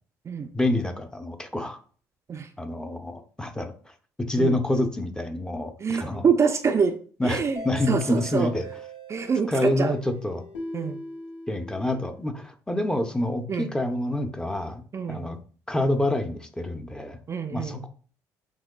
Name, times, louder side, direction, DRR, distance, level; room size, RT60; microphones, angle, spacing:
voice 1, 0.5-1.8 2.6-3.7 4.2-6.3 7.2-8.7 9.5-10.4 11.5-14.8 15.1-15.4 15.7-17.2 17.5-17.9, left 1 dB, 10° left, 6 dB, 0.6 m, -27 dB
voice 2, 5.8-6.9 7.2-8.5 9.1-9.9 10.7-11.0 13.5-13.7 14.9-15.3 17.3-17.8, right 5 dB, 35° right, 6 dB, 0.4 m, -25 dB
sound 1, 7.6-12.2, left 1 dB, 85° left, 1.0 m, -40 dB
6.0 x 2.2 x 2.2 m, 0.42 s
hypercardioid pair, 65°, 8 cm